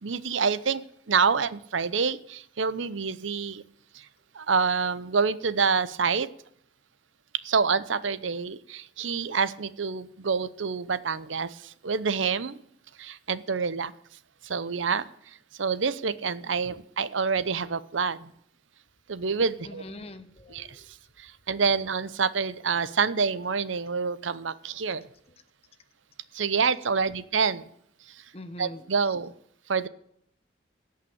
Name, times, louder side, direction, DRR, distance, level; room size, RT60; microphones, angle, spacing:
voice 1, 0.0-3.6 3.9-4.0 4.3-6.3 7.4-12.6 13.0-13.9 14.4-15.1 15.6-18.3 19.1-19.8 20.5-20.8 21.2-25.0 26.3-27.6 28.6-29.3 29.7-29.9, right 5 dB, 85° right, 15 dB, 0.8 m, -27 dB
voice 2, 19.6-20.9 28.3-29.1, left 1 dB, 30° left, 10 dB, 0.9 m, -43 dB
17.0 x 5.8 x 8.7 m, 0.68 s
head